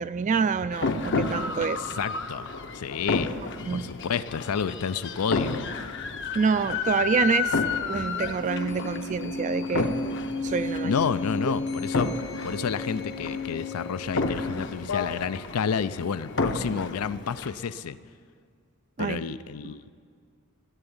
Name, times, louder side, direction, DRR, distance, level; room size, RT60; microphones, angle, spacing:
voice 1, 0.0-1.8 3.7-3.9 6.3-7.6 7.9-9.9 10.4-10.9 19.0-19.2, right 5 dB, 35° right, 14 dB, 0.3 m, -27 dB
sound 1, 0.7-17.5, left 4 dB, 55° left, 0.8 m, -30 dB
voice 2, 1.6-3.4 3.7-5.7 10.8-12.1 12.4-18.0 19.0-19.9, left 6 dB, 85° left, 15 dB, 0.5 m, -30 dB
14.5 x 7.9 x 9.9 m, 2.1 s
head